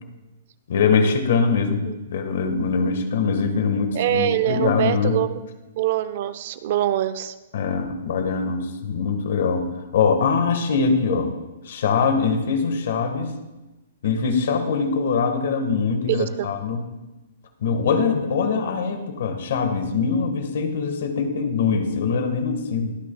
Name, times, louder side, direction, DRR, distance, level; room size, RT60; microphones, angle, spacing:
voice 1, 0.7-5.2 7.5-9.7 9.9-11.3 11.6-13.3 14.0-16.8 17.6-22.9, left 5 dB, 55° left, 7 dB, 1.5 m, -22 dB
voice 2, 3.9-5.3 5.7-7.3 16.1-16.5, right 13 dB, 40° right, 13 dB, 0.4 m, -24 dB
22.0 x 8.5 x 2.3 m, 1.0 s
hypercardioid pair, 175°, 0 cm